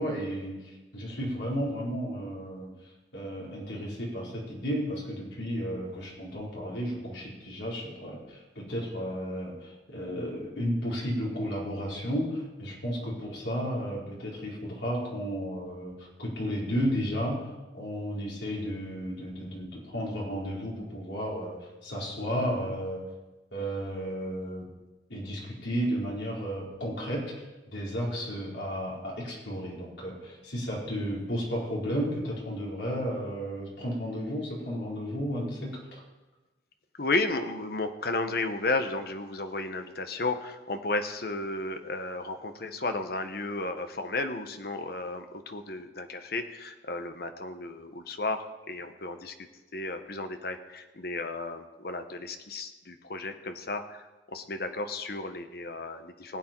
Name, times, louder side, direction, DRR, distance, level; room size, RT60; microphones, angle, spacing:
voice 1, 0.0-2.7 3.1-23.0 23.5-24.7 25.1-36.0, equal, 85° left, -4 dB, 4.4 m, -33 dB
voice 2, 37.0-49.3 49.7-56.4, left 2 dB, 55° left, 7 dB, 1.0 m, -33 dB
19.5 x 8.4 x 4.5 m, 1.1 s
head